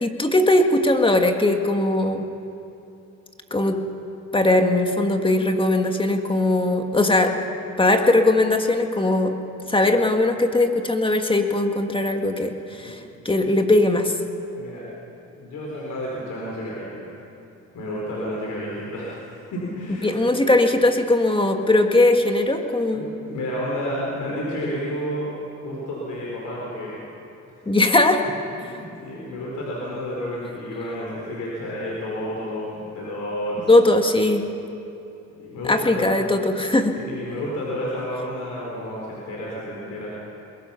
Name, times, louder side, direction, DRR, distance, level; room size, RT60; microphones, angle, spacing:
voice 1, 0.0-2.3 3.5-3.8 4.3-7.3 7.8-9.3 9.7-14.1 20.0-23.1 27.7-28.2 33.7-34.4 35.7-37.0, left 2 dB, 15° left, 5 dB, 1.8 m, -19 dB
voice 2, 15.3-17.1 17.7-20.8 22.9-25.3 25.6-27.0 28.5-33.7 35.3-36.2 36.9-40.3, equal, 80° left, -4 dB, 4.6 m, -31 dB
23.0 x 21.0 x 5.8 m, 2.8 s
cardioid pair, 90°, 30 cm